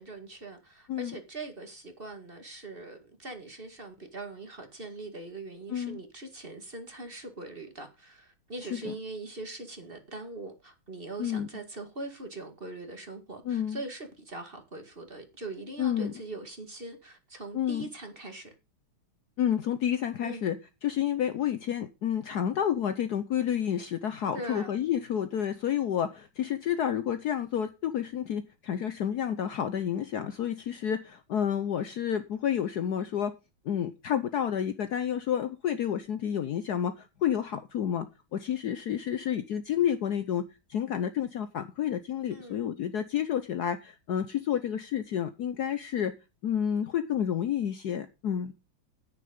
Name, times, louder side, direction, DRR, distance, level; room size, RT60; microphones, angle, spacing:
voice 1, 0.0-18.5 20.2-20.4 24.3-24.7 42.3-42.7, right 2 dB, 30° right, 2.1 m, -42 dB
voice 2, 8.6-8.9 11.2-11.5 13.4-13.8 15.8-16.1 17.5-17.8 19.4-20.6 20.8-33.3 33.6-38.1 38.3-40.4 40.7-46.1 46.4-48.5, left 9 dB, 65° left, 1.1 m, -30 dB
9.8 x 9.6 x 5.2 m
omnidirectional pair, 2.2 m